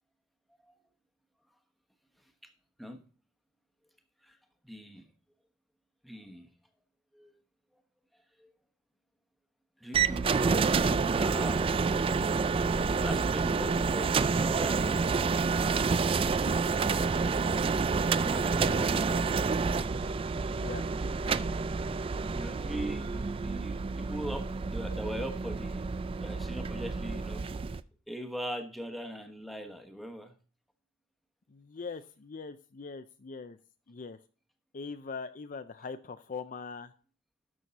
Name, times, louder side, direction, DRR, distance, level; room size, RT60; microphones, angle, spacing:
voice 1, 4.6-5.1 6.0-6.5 7.1-7.3 8.4-8.5 9.8-10.6 11.0-11.8 12.9-15.1 18.2-19.1 22.3-25.9 26.2-27.5 28.1-30.3, equal, ahead, 5 dB, 1.1 m, -41 dB
sound 1, 9.9-27.8, right 4 dB, 30° right, 0.3 m, -29 dB
voice 2, 16.3-17.6 18.7-19.2 20.6-20.9 31.5-33.6 33.9-34.2 34.7-36.9, left 4 dB, 45° left, 10 dB, 0.5 m, -42 dB
12.5 x 6.3 x 4.0 m, 0.39 s
head